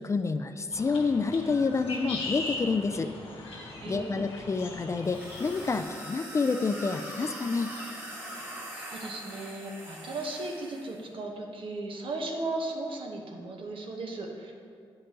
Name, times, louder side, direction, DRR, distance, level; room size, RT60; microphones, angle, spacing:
voice 1, 0.0-3.1 3.9-7.7, left 4 dB, 30° left, 9 dB, 0.3 m, -28 dB
sound 1, 0.7-5.8, left 2 dB, 75° left, 1.6 m, -39 dB
voice 2, 3.8-4.3 8.8-14.5, right 2 dB, 65° right, 1 dB, 1.0 m, -36 dB
sound 2, 5.0-11.0, equal, 20° right, 1.4 m, -42 dB
8.7 x 5.2 x 2.9 m, 2.2 s
cardioid pair, 70°, 10 cm